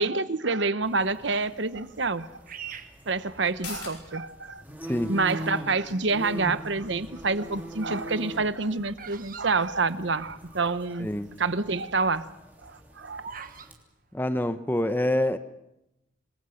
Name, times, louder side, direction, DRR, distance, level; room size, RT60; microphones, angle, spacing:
voice 1, 0.0-2.3 3.1-4.6 5.1-11.1 11.4-12.2 12.6-13.2, right 3 dB, 65° right, 13 dB, 1.0 m, -27 dB
sound 1, 0.8-13.7, equal, 10° right, 3.2 m, -42 dB
Bird vocalization bird call bird song, 2.5-4.0 4.6-5.1 5.8-6.7 7.0-10.5 10.8-10.9 11.0-11.4 11.8-13.7, right 7 dB, 45° right, 1.3 m, -43 dB
sound 2, 3.4-10.6 10.9-11.0, left 6 dB, 60° left, 5.7 m, -50 dB
voice 2, 14.1-15.4, left 1 dB, 10° left, 10 dB, 0.8 m, -26 dB
27.0 x 21.5 x 6.5 m, 0.89 s
head